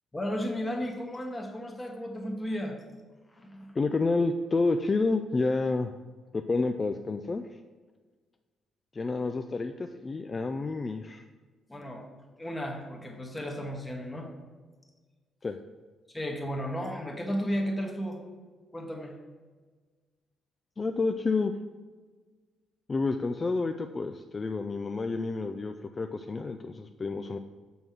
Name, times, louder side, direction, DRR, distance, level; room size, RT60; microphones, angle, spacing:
voice 1, 0.1-2.8 3.3-3.7 11.7-12.1 12.4-14.3 16.1-18.2 18.7-19.1, equal, 15° left, 1 dB, 1.1 m, -34 dB
voice 2, 3.8-5.9 6.3-7.4 8.9-11.3 15.4-15.6 20.8-21.5 22.9-27.4, left 3 dB, 30° left, 7 dB, 0.3 m, -29 dB
6.1 x 5.5 x 5.6 m, 1.4 s
cardioid pair, 90°, 0 cm